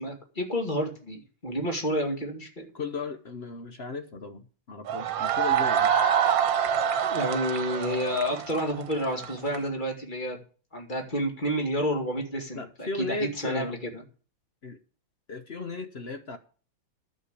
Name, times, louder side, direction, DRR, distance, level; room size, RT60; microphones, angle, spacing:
voice 1, 0.0-2.7 7.0-10.4 10.7-13.8, equal, 25° left, 2.3 m, -30 dB
voice 2, 2.7-5.9 12.5-13.8 14.6-14.8 15.3-16.4, left 3 dB, 50° left, 0.8 m, -36 dB
sound 1, 4.9-9.6, right 8 dB, 75° right, 1.6 m, -25 dB
11.5 x 6.9 x 8.2 m
omnidirectional pair, 2.2 m